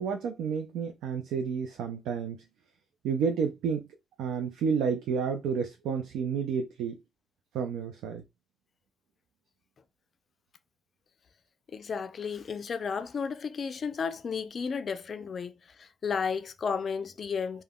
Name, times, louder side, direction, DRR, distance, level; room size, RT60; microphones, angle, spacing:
voice 1, 0.0-2.4 3.0-3.9 4.2-7.0 7.5-8.2, right 6 dB, 85° right, 0.4 m, -30 dB
voice 2, 11.7-17.6, left 6 dB, 45° left, 0.3 m, -33 dB
2.3 x 2.1 x 3.3 m
cardioid pair, 90°, 0 cm